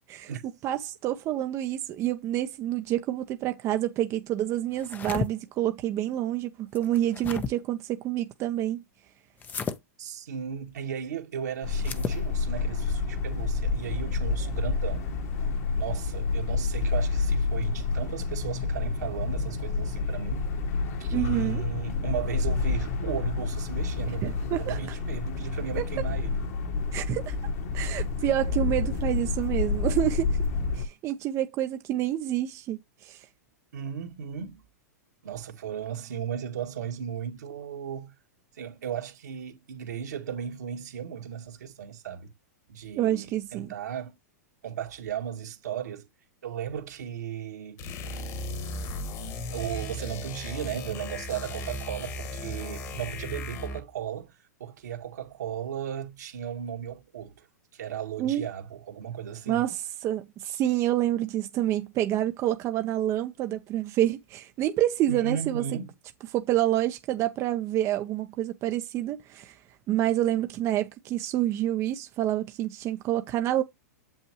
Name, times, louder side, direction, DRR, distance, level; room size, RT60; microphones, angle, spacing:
voice 1, 0.6-8.8 21.1-21.6 24.2-24.8 25.8-25.9 26.9-27.4 27.7-30.4 30.7-33.2 43.0-43.7 58.2-58.4 59.5-59.8 60.0-65.6 66.3-69.5 69.9-73.6, right 13 dB, 35° right, 0.7 m, -28 dB
sound 1, 4.7-5.3 6.8-7.5 9.4-9.8 11.8-12.2, left 6 dB, 20° left, 0.7 m, -33 dB
voice 2, 10.0-15.1 15.8-20.5 21.0-26.4 33.7-34.6 35.2-38.1 38.5-42.3 42.7-44.2 44.6-46.1 46.4-47.8 49.5-57.5 57.7-59.7 65.1-65.9, right 8 dB, 80° right, 2.1 m, -36 dB
sound 2, 11.6-30.9, left 4 dB, 60° left, 2.0 m, -29 dB
sound 3, 47.8-53.9, left 1 dB, 40° left, 1.7 m, -36 dB
7.3 x 5.6 x 3.0 m
hypercardioid pair, 125°, 9 cm